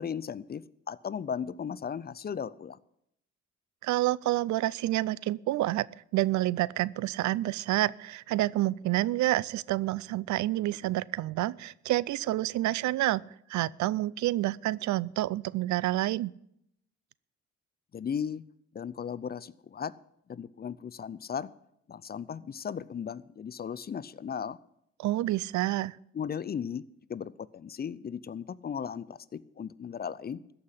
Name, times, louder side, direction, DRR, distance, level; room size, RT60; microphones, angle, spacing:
voice 1, 0.0-2.8 17.9-18.4 18.7-19.9 20.3-21.5 21.9-24.6 26.1-26.8 27.1-30.4, left 7 dB, 30° left, 18 dB, 0.5 m, -36 dB
voice 2, 3.8-5.9 6.1-13.2 13.5-16.3 25.0-26.0, right 16 dB, 70° right, 23 dB, 0.4 m, -28 dB
14.0 x 5.8 x 9.8 m, 0.75 s
cardioid pair, 90°, 30 cm